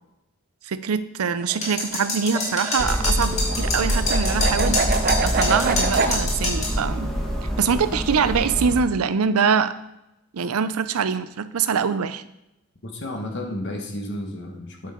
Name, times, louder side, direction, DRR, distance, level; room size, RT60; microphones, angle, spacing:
voice 1, 0.6-4.8 5.2-7.1 7.6-9.7 10.3-12.2, right 6 dB, 90° right, 13 dB, 0.5 m, -23 dB
sound 1, 1.4-6.1, right 4 dB, 45° right, 0.6 m, -26 dB
sound 2, 1.6-6.8, left 2 dB, 30° left, 2.3 m, -26 dB
sound 3, 2.8-8.8, equal, ahead, 1.5 m, -25 dB
voice 2, 12.8-14.9, left 1 dB, 55° left, 2 dB, 1.5 m, -32 dB
9.3 x 6.9 x 3.8 m, 0.88 s
head